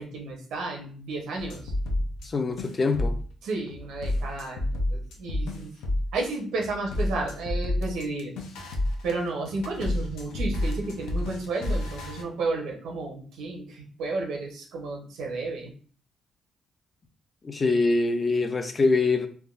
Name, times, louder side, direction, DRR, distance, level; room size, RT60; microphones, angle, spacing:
voice 1, 0.0-1.6 3.4-5.7 6.1-8.3 9.0-15.7, right 3 dB, 85° right, 0.8 m, -32 dB
sound 1, 1.4-2.3 2.6-3.3 3.7-6.2 6.6-12.2, left 1 dB, 90° left, 0.5 m, -30 dB
voice 2, 2.2-3.2 17.4-19.3, left 3 dB, 35° left, 0.4 m, -24 dB
3.4 x 2.2 x 2.4 m
cardioid pair, 90°, 0 cm